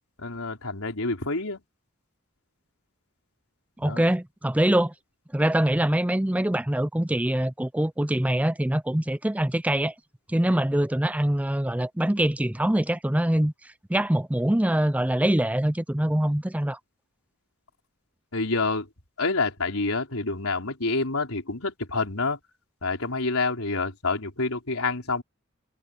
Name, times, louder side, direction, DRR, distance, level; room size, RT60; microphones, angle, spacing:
voice 1, 0.2-1.6 3.8-4.0 18.3-18.9 19.2-22.4 22.8-25.2, left 3 dB, 75° left, 4.1 m, -27 dB
voice 2, 3.8-4.9 5.3-9.9 10.3-13.5 13.9-16.8, right 1 dB, 5° right, 0.5 m, -24 dB
head